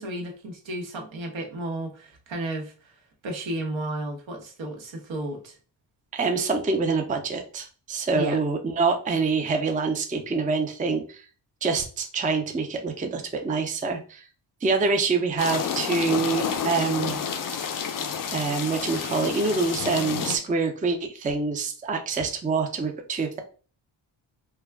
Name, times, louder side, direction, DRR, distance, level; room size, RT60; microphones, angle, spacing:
voice 1, 0.0-3.0 3.2-5.6 8.1-8.4, right 1 dB, 70° right, 2 dB, 0.9 m, -33 dB
voice 2, 6.1-11.2 11.6-14.2 14.6-17.2 18.3-23.4, right 4 dB, 20° right, 5 dB, 0.4 m, -26 dB
sound 1, 15.4-20.4, left 7 dB, 45° left, 0.5 m, -29 dB
2.3 x 2.2 x 3.3 m, 0.38 s
cardioid pair, 55°, 47 cm